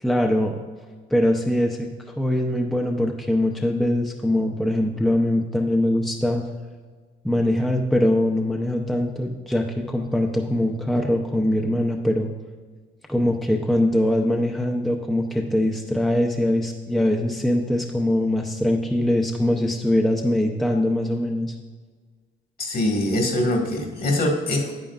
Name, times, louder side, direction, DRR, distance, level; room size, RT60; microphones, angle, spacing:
voice 1, 0.0-0.6 1.1-1.9 2.2-6.4 7.2-12.3 13.1-21.5, left 1 dB, ahead, 1 dB, 0.6 m, -22 dB
voice 2, 22.6-24.7, left 1 dB, 50° left, 1 dB, 1.7 m, -23 dB
9.0 x 9.0 x 2.4 m, 1.5 s
cardioid pair, 90°, 20 cm